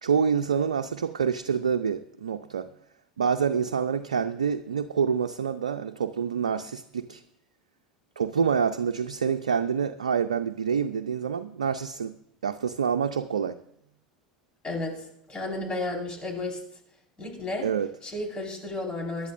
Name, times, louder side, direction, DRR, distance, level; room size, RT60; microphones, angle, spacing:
voice 1, 0.0-2.7 3.2-7.2 8.2-12.2 12.4-13.6 17.6-17.9, right 6 dB, 85° right, 8 dB, 0.5 m, -27 dB
voice 2, 14.6-16.6 17.2-17.7 18.0-19.3, left 2 dB, 25° left, 2 dB, 4.7 m, -33 dB
23.0 x 11.0 x 2.5 m, 0.74 s
figure-of-eight pair, 75°, 4 cm